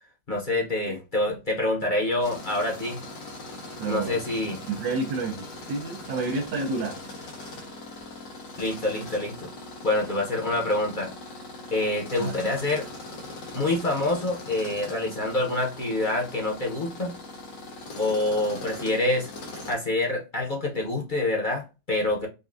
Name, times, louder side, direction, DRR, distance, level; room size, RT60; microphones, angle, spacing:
voice 1, 0.3-3.0 3.9-4.6 8.6-9.5 9.8-11.1 11.7-12.9 13.5-17.1 18.0-19.3 19.7-22.3, left 2 dB, 35° left, 0.9 m, -26 dB
Tools, 2.2-19.7, left 2 dB, 85° left, 1.8 m, -41 dB
voice 2, 3.8-4.2 4.7-7.0 12.2-12.3, right 3 dB, 90° right, 1.6 m, -30 dB
5.3 x 2.4 x 2.5 m
omnidirectional pair, 1.9 m